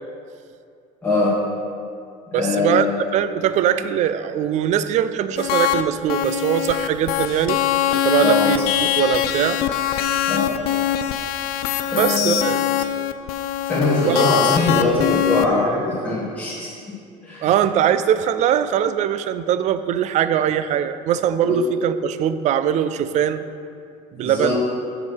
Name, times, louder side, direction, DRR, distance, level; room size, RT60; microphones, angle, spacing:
voice 1, 1.0-1.4 2.3-3.0 8.2-8.5 10.3-10.5 11.9-12.5 13.6-16.7 17.2-17.5 21.4-21.6 24.2-24.6, left 2 dB, 10° left, -8 dB, 2.0 m, -21 dB
voice 2, 2.3-7.6 8.0-9.6 11.9-12.9 14.0-14.2 17.4-23.4 24.2-24.6, right 10 dB, 50° right, 13 dB, 0.4 m, -21 dB
sound 1, 5.4-5.8 6.1-15.4, left 11 dB, 70° left, 0.5 m, -22 dB
7.1 x 4.8 x 6.5 m, 2.4 s
cardioid pair, 130°, 16 cm